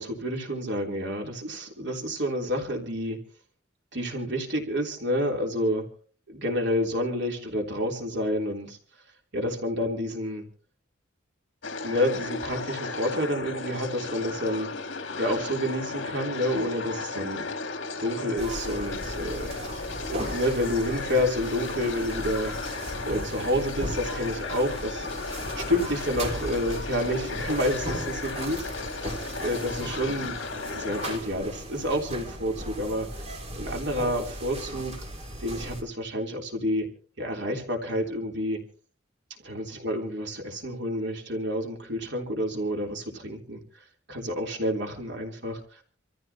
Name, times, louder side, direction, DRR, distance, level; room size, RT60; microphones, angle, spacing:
voice 1, 0.0-3.2 3.9-5.9 6.3-8.8 9.3-10.4 11.8-14.7 15.2-17.5 18.0-19.5 20.1-22.6 23.0-28.6 29.4-33.1 33.5-35.0 35.4-36.9 37.2-38.6 39.4-43.6 44.1-45.8, equal, 60° right, 1 dB, 3.5 m, -29 dB
sound 1, 11.6-31.2, left 4 dB, 70° left, 1.7 m, -35 dB
sound 2, 18.4-35.8, right 1 dB, 30° right, 3.3 m, -37 dB
27.5 x 15.0 x 2.9 m, 0.41 s
head